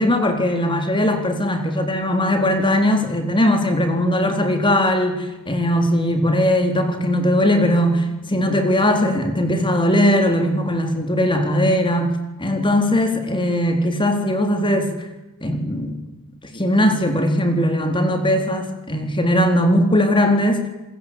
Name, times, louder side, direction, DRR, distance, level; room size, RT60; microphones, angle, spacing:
voice 1, 0.0-14.9 15.4-16.0 16.4-20.7, left 1 dB, 25° left, 6 dB, 4.0 m, -19 dB
26.5 x 22.0 x 8.6 m, 1.0 s
head